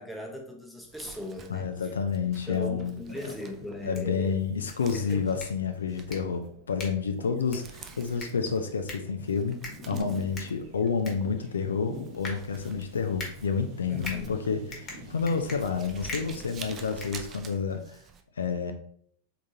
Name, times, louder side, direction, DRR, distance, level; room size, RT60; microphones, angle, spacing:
voice 1, 0.0-1.9 2.5-4.3 4.9-5.3 13.9-14.4, equal, ahead, 0 dB, 0.9 m, -39 dB
Crumpling crinkling, 0.8-18.2, right 6 dB, 25° right, 0.4 m, -50 dB
voice 2, 1.5-3.0 3.8-9.6 9.9-18.0 18.4-18.7, left 5 dB, 70° left, 7 dB, 0.4 m, -29 dB
sound 1, 2.4-2.5 2.8-17.1, equal, 50° right, 1.1 m, -47 dB
sound 2, 3.7-17.8, left 3 dB, 25° left, 1.2 m, -45 dB
3.8 x 3.6 x 2.8 m, 0.63 s
figure-of-eight pair, 90°, 0 cm